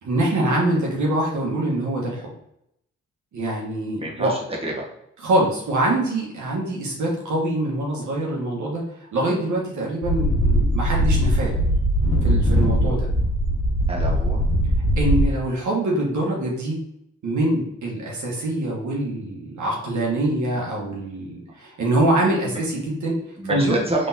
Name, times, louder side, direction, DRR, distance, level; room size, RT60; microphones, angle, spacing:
voice 1, 0.0-2.3 3.3-4.3 5.2-11.5 12.2-13.1 15.0-16.8 17.2-23.2 23.4-23.7, right 1 dB, 70° right, -3 dB, 1.2 m, -24 dB
voice 2, 3.9-4.8 13.9-14.4 22.5-22.6 23.4-24.1, right 1 dB, 20° right, -2 dB, 1.5 m, -27 dB
sound 1, 10.0-15.3, equal, 70° left, 1.1 m, -20 dB
3.7 x 3.3 x 2.7 m, 0.76 s
supercardioid pair, 45°, 31 cm